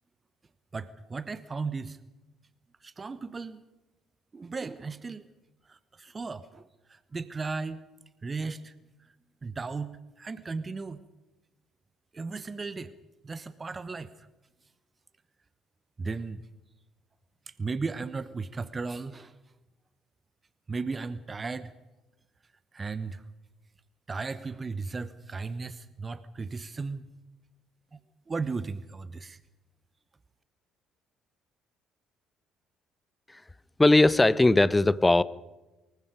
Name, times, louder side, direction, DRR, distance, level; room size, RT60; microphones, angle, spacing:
voice 1, 0.7-2.0 2.8-3.6 4.3-5.2 5.7-7.8 8.2-8.7 9.4-11.0 12.1-12.9 13.2-14.3 16.0-16.5 17.5-19.3 20.7-21.7 22.7-23.2 24.1-27.1 27.9-28.0 28.3-29.4, right 4 dB, 30° right, 16 dB, 1.1 m, -36 dB
voice 2, 33.8-35.2, left 2 dB, 15° left, 19 dB, 0.8 m, -19 dB
24.5 x 22.0 x 5.2 m, 1.0 s
figure-of-eight pair, 50°, 0 cm